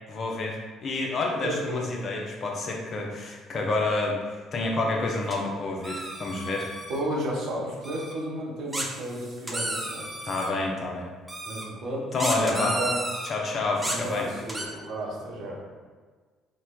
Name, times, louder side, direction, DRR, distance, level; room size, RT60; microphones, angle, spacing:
voice 1, 0.1-4.2 4.5-6.7 10.2-11.1 12.1-12.8 13.2-14.3, left 3 dB, 50° left, 0 dB, 0.6 m, -28 dB
voice 2, 1.4-1.8 6.9-10.1 11.5-13.0 13.8-15.6, right 1 dB, 65° right, -3 dB, 0.8 m, -32 dB
sound 1, 5.3-5.4 5.8-7.0 7.8-8.1 8.7-10.5 11.3-11.6 12.2-13.3 13.8-14.7, right 1 dB, 15° right, 0.6 m, -33 dB
4.2 x 2.2 x 2.2 m, 1.4 s
hypercardioid pair, 55°, 0 cm